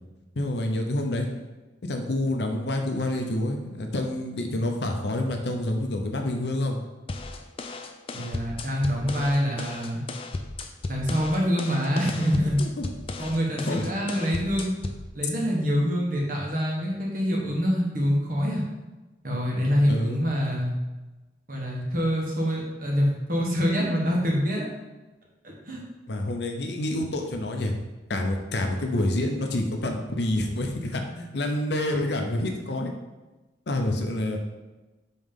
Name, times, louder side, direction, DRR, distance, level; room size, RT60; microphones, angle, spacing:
voice 1, 0.4-1.4 1.8-6.8 12.6-12.8 13.2-13.4 13.7-13.9 19.9-20.2 26.1-27.7 28.1-32.9 33.7-34.4, left 1 dB, 65° left, 3 dB, 0.7 m, -28 dB
sound 1, 7.1-15.1, left 3 dB, 30° left, 0.4 m, -35 dB
voice 2, 8.1-10.0 10.9-12.6 13.2-14.7 15.1-18.6 19.2-20.8 21.5-24.7 25.6-25.9, equal, 45° right, -2 dB, 1.3 m, -25 dB
5.6 x 3.1 x 5.3 m, 1.1 s
head